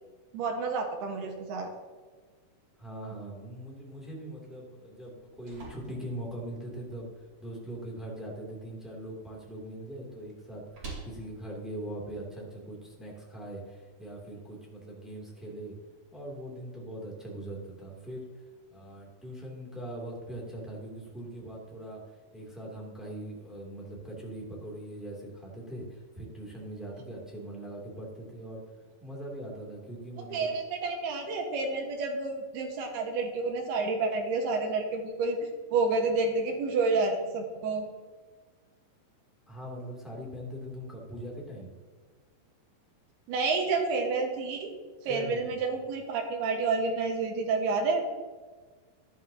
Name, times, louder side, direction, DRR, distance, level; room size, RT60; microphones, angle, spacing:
voice 1, 0.3-1.7 30.3-35.4 35.7-37.9 43.3-44.7 45.0-48.0, right 3 dB, 80° right, 2 dB, 3.4 m, -29 dB
voice 2, 2.8-15.7 16.1-18.2 18.7-22.0 22.3-28.6 29.0-30.5 39.5-41.7 45.0-45.6, right 1 dB, ahead, -3 dB, 1.7 m, -41 dB
sound 1, 5.0-13.0, right 3 dB, 35° right, 2.9 m, -50 dB
15.0 x 11.5 x 2.9 m, 1.5 s
omnidirectional pair, 4.5 m